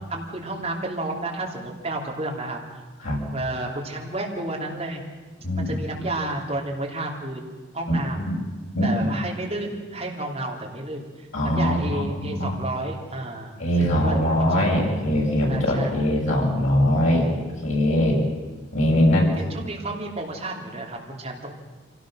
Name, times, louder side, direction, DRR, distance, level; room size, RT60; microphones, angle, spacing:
voice 1, 0.1-2.8 3.3-5.0 5.6-8.3 8.8-14.8 15.5-16.1 19.4-21.5, right 2 dB, 30° right, -1 dB, 3.1 m, -31 dB
voice 2, 5.4-5.7 8.2-8.4 8.7-9.1 11.3-12.6 13.6-17.3 17.6-18.2 18.7-19.3, equal, 85° left, -2 dB, 5.8 m, -21 dB
25.5 x 17.0 x 6.4 m, 1.3 s
head